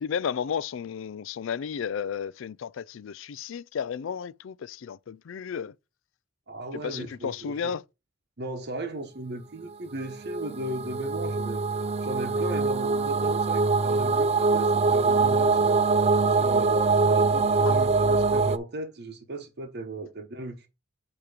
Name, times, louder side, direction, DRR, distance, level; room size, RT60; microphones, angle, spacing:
voice 1, 0.0-5.7 6.8-7.8 17.7-17.8, left 7 dB, 65° left, 0.4 m, -33 dB
voice 2, 6.5-7.7 8.4-11.6 12.0-15.9 16.3-20.7, right 1 dB, 55° right, 1.0 m, -37 dB
sound 1, 10.1-18.6, right 4 dB, 30° right, 0.4 m, -23 dB
8.5 x 3.0 x 5.0 m
head